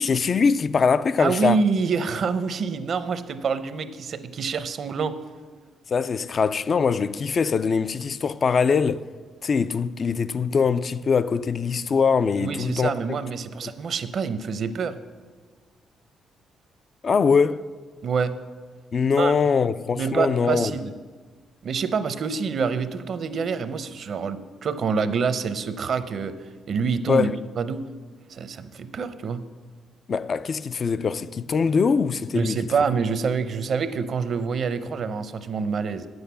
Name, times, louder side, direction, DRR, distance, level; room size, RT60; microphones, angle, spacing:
voice 1, 0.0-1.6 5.9-9.1 9.4-12.9 13.6-13.7 17.0-17.7 18.9-20.7 27.1-27.4 30.1-32.7, left 5 dB, 45° left, 0.3 m, -22 dB
voice 2, 1.2-5.1 12.4-15.0 18.0-18.3 19.2-19.3 20.0-20.9 21.6-27.3 27.6-27.8 28.3-29.4 32.3-36.1, right 5 dB, 55° right, 0.7 m, -26 dB
9.2 x 8.0 x 6.9 m
cardioid pair, 90°, 0 cm